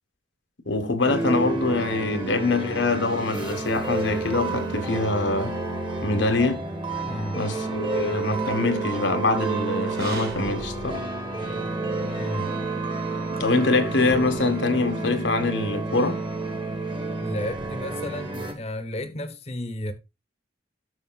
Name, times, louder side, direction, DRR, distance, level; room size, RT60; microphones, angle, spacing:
voice 1, 0.7-5.6 6.0-6.6 7.3-11.0 13.3-16.2, left 3 dB, 80° left, 1.4 m, -24 dB
sound 1, 1.0-18.5, right 3 dB, 25° right, 1.5 m, -30 dB
voice 2, 7.0-7.4 12.2-12.5 17.2-19.9, left 1 dB, 35° left, 1.0 m, -32 dB
sound 2, 7.9-12.6 13.2-13.3 13.5-13.6 14.1-17.9, right 3 dB, 55° right, 2.2 m, -45 dB
11.5 x 6.7 x 2.4 m
head